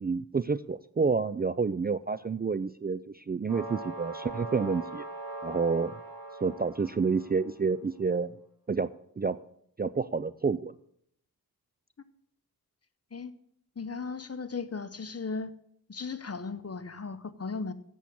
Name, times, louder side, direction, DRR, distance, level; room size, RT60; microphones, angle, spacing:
voice 1, 0.0-5.0 5.4-5.9 6.4-8.4 8.7-8.9 9.2-9.4 9.8-10.7, right 5 dB, 25° right, 14 dB, 0.3 m, -29 dB
sound 1, 3.5-7.5, right 2 dB, 85° right, 3.8 m, -41 dB
voice 2, 13.8-15.5 15.9-17.7, left 4 dB, 40° left, 13 dB, 0.8 m, -36 dB
8.3 x 7.4 x 8.4 m, 0.71 s
cardioid pair, 45°, 38 cm